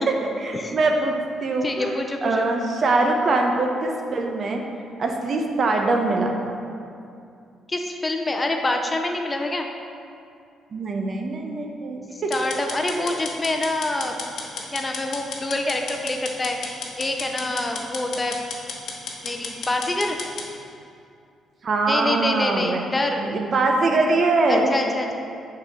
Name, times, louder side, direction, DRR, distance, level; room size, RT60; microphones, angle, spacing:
voice 1, 0.1-4.6 5.0-6.3 10.7-12.3 12.9-13.1 21.6-22.8 23.2-24.7, right 3 dB, 50° right, 2 dB, 0.8 m, -23 dB
voice 2, 1.6-2.5 7.7-9.7 12.1-14.1 14.5-18.4 19.2-20.2 21.9-23.3 24.5-25.1, left 2 dB, 25° left, 3 dB, 0.6 m, -26 dB
sound 1, 12.3-20.5, left 4 dB, 65° left, 0.9 m, -34 dB
5.3 x 4.1 x 6.0 m, 2.5 s
cardioid pair, 90°, 0 cm